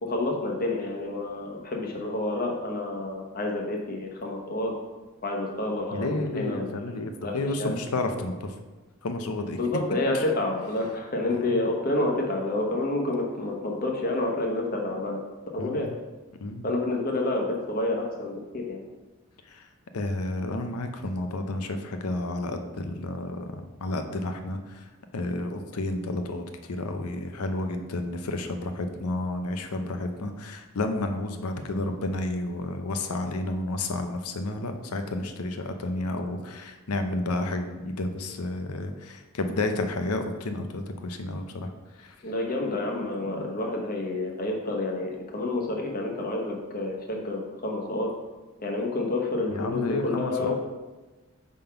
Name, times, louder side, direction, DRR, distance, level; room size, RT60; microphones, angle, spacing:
voice 1, 0.0-4.8 5.2-6.8 7.2-7.8 9.5-15.2 15.5-15.9 16.6-18.8 42.2-48.1 48.6-50.6, left 2 dB, 40° left, 0 dB, 1.0 m, -29 dB
voice 2, 5.9-8.5 9.0-9.6 11.3-11.5 15.6-15.9 16.4-16.7 19.5-19.6 19.9-23.5 23.8-24.8 25.1-41.7 42.0-42.1 43.3-43.4 49.5-50.6, left 2 dB, 85° left, 6 dB, 0.7 m, -31 dB
5.3 x 3.7 x 5.7 m, 1.2 s
head